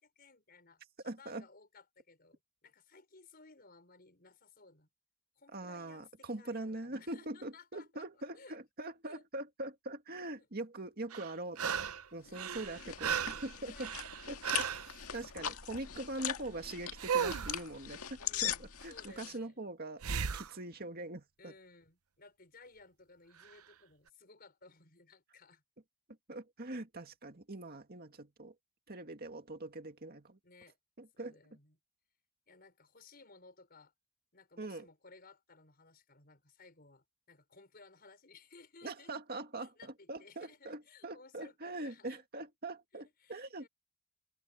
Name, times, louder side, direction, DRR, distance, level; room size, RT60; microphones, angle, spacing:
voice 1, 0.0-4.9 5.4-8.6 8.8-9.2 10.4-10.5 12.2-12.9 13.6-14.2 15.5-15.6 18.2-19.6 21.4-25.6 30.4-30.8 31.2-31.8 32.5-33.9 34.3-39.1 39.6-42.2 42.9-43.7, left 3 dB, 45° left, 5.4 m, -59 dB
voice 2, 1.0-1.4 5.5-11.8 12.1-13.9 14.3-14.6 15.1-20.0 20.3-21.5 26.3-28.5 28.9-30.4 31.0-31.3 34.6-34.9 38.8-43.7, right 2 dB, 45° right, 2.1 m, -43 dB
sound 1, 11.1-12.1 12.3-14.9 17.0-17.6 20.0-20.5 23.4-23.5, right 7 dB, 80° right, 0.8 m, -35 dB
sound 2, 12.3-19.4, left 10 dB, 80° left, 1.9 m, -41 dB
open air
head